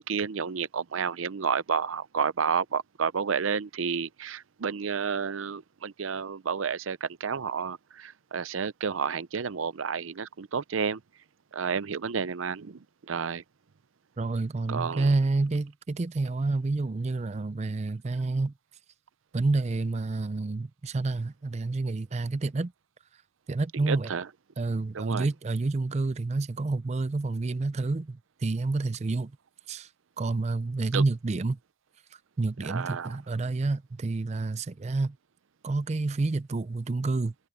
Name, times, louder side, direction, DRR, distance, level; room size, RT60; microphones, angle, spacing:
voice 1, 0.0-11.0 11.5-13.4 14.7-15.1 23.7-24.3 24.9-25.3 30.9-31.0 32.6-33.2, right 6 dB, 85° right, 0.6 m, -31 dB
voice 2, 14.2-18.5 19.3-22.7 23.5-24.1 24.6-29.3 29.7-29.9 30.2-31.6 32.1-35.2 35.6-37.3, right 3 dB, 35° right, 0.4 m, -29 dB
head